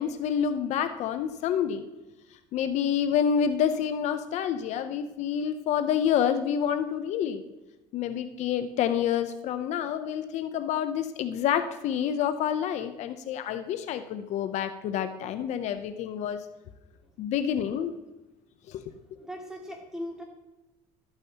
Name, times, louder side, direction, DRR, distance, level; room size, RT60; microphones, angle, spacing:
voice 1, 0.0-1.8 2.5-7.4 7.9-16.5 17.2-17.9 18.7-18.9, left 8 dB, 60° left, 9 dB, 0.6 m, -28 dB
voice 2, 19.0-20.2, equal, 5° right, 0 dB, 2.2 m, -40 dB
12.5 x 8.8 x 2.8 m, 1.0 s
cardioid pair, 115°, 13 cm